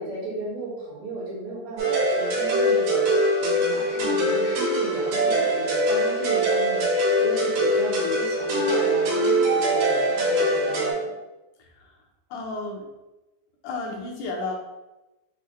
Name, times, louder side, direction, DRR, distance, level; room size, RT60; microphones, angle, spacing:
voice 1, 0.0-11.1, right 1 dB, 65° right, -5 dB, 2.2 m, -35 dB
sound 1, 1.8-10.9, right 1 dB, 85° right, 2.7 m, -22 dB
voice 2, 11.6-12.0 12.3-12.9 13.6-14.5, left 3 dB, 75° left, 0 dB, 2.1 m, -32 dB
6.1 x 2.1 x 3.7 m, 1.0 s
omnidirectional pair, 3.7 m